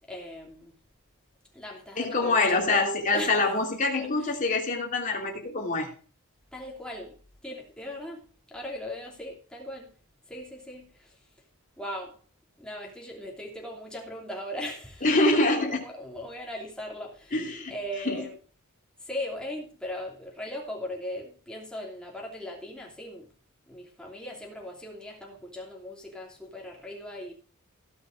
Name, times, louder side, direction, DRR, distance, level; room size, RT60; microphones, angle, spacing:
voice 1, 0.0-0.8 1.5-3.4 3.9-4.4 6.5-9.9 10.3-11.2 11.8-12.2 12.6-17.4 17.7-18.4 19.0-23.3 23.7-27.3, left 1 dB, 5° left, 2.9 m, -39 dB
voice 2, 2.0-5.9 15.0-15.8 17.3-17.7 18.0-18.2, left 2 dB, 35° left, 2.9 m, -25 dB
16.5 x 5.8 x 5.1 m
head